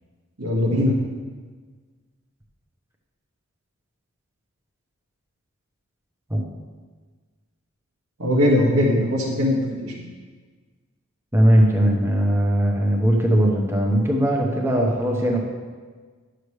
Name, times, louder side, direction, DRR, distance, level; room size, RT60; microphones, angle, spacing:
voice 1, 0.4-0.9 8.2-10.1, left 1 dB, 85° right, -2 dB, 1.8 m, -20 dB
voice 2, 11.3-15.4, equal, 10° right, -1 dB, 1.0 m, -19 dB
11.5 x 6.6 x 3.3 m, 1.5 s
head